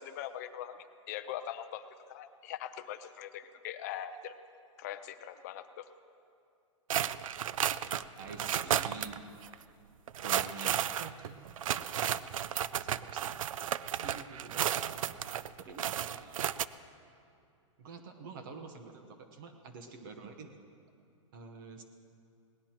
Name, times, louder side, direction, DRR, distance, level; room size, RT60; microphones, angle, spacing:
voice 1, 0.0-1.8 2.1-4.3 4.8-5.9, left 10 dB, 30° left, 11 dB, 0.5 m, -42 dB
sound 1, 6.9-9.2 9.4-9.5 10.1-16.7, right 10 dB, 90° right, 0.5 m, -33 dB
voice 2, 8.2-9.3 10.2-11.3 12.7-13.3 14.0-15.2 15.6-16.6 17.8-20.5 21.3-21.8, right 4 dB, 40° right, 5 dB, 1.1 m, -47 dB
20.5 x 18.5 x 3.0 m, 2.5 s
hypercardioid pair, 170°, 17 cm